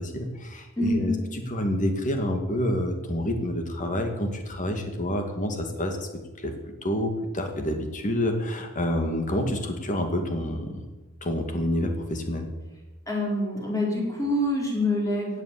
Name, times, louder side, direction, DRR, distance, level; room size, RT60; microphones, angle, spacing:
voice 1, 0.0-6.0 6.4-6.5 6.8-10.8 11.2-12.5, left 1 dB, 40° left, 5 dB, 2.3 m, -28 dB
voice 2, 0.8-1.2 13.1-15.4, left 1 dB, 15° left, -2 dB, 4.7 m, -26 dB
16.5 x 8.7 x 8.6 m, 1.1 s
head